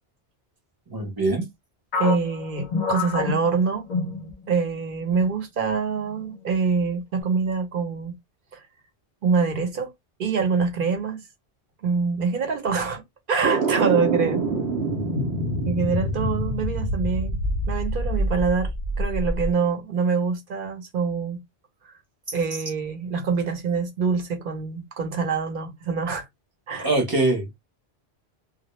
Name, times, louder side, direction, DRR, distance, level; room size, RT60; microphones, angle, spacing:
voice 1, 0.9-1.5 26.8-27.5, right 2 dB, 25° right, 0.6 m, -23 dB
sound 1, 1.9-4.8 5.1-5.3 5.9-6.4, left 5 dB, 55° left, 0.6 m, -28 dB
voice 2, 2.0-3.9 4.5-8.1 8.5-8.6 9.2-9.9 10.2-11.3 11.8-13.0 13.3-14.4 15.7-17.4 17.7-18.7 19.0-21.4 21.8-21.9 22.3-26.3 26.7-26.9, right 5 dB, 55° right, 0.9 m, -25 dB
sound 2, 13.4-19.5, right 1 dB, 90° right, 0.9 m, -26 dB
2.2 x 2.1 x 2.9 m
omnidirectional pair, 1.1 m